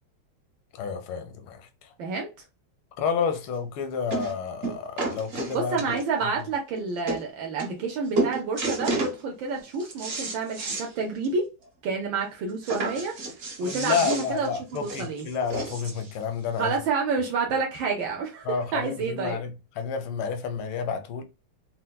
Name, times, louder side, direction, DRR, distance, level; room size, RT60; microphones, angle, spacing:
voice 1, 0.7-1.9 3.0-5.8 13.6-16.7 18.4-21.2, left 6 dB, 85° left, 1.5 m, -30 dB
voice 2, 2.0-2.3 5.5-11.5 11.8-13.1 13.6-15.3 16.6-19.4, right 4 dB, 75° right, 1.4 m, -29 dB
sound 1, 3.4-3.5 4.1-4.3 4.6-6.2 6.8-6.9 7.1-7.2 7.6-7.9 8.2-9.2 9.6-10.9 11.2-11.3 11.7-11.8 12.6-16.1 16.9-17.0, right 3 dB, 45° right, 0.8 m, -31 dB
4.5 x 2.2 x 2.2 m
omnidirectional pair, 2.2 m